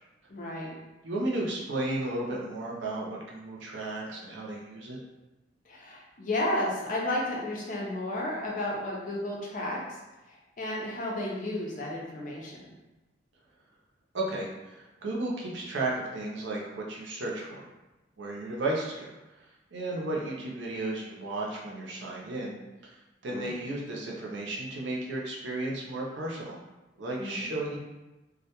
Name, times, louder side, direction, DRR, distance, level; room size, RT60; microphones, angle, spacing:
voice 1, 0.3-0.7 5.7-9.8 10.3-12.7 23.3-23.5 27.2-27.5, left 1 dB, 45° left, -3 dB, 0.5 m, -33 dB
voice 2, 1.0-5.0 14.1-17.7 18.2-19.1 19.7-22.6 22.8-22.9 23.2-26.6 27.0-27.8, right 2 dB, 75° right, -3 dB, 0.5 m, -34 dB
2.1 x 2.1 x 2.8 m, 1.1 s
head